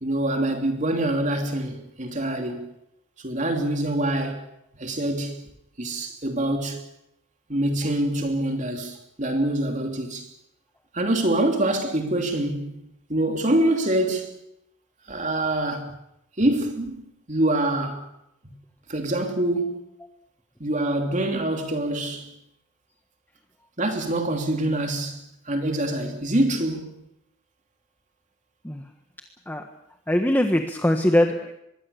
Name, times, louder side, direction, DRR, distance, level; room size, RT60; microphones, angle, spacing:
voice 1, 0.0-2.7 3.2-4.4 4.8-5.5 5.8-6.8 7.5-10.3 10.9-12.8 13.1-14.3 15.1-16.0 16.4-18.1 18.4-18.5 18.9-19.8 20.6-22.3 23.8-27.0, right 1 dB, 40° right, 3.1 m, -25 dB
voice 2, 30.1-31.6, left 1 dB, 10° left, 1.4 m, -22 dB
24.5 x 22.0 x 7.1 m
head